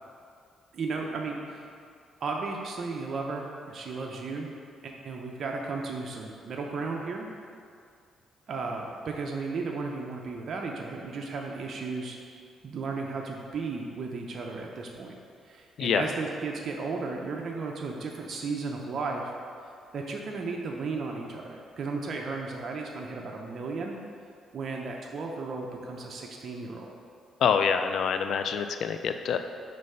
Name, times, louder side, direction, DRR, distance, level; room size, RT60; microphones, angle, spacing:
voice 1, 0.7-1.7 2.2-4.5 4.8-7.3 8.5-12.2 12.6-15.1 15.4-19.3 19.9-24.0 24.5-26.9, right 4 dB, 55° right, 0 dB, 0.6 m, -34 dB
voice 2, 27.4-29.4, left 7 dB, 65° left, 8 dB, 0.3 m, -26 dB
5.4 x 3.2 x 5.4 m, 2.3 s
cardioid pair, 90°, 0 cm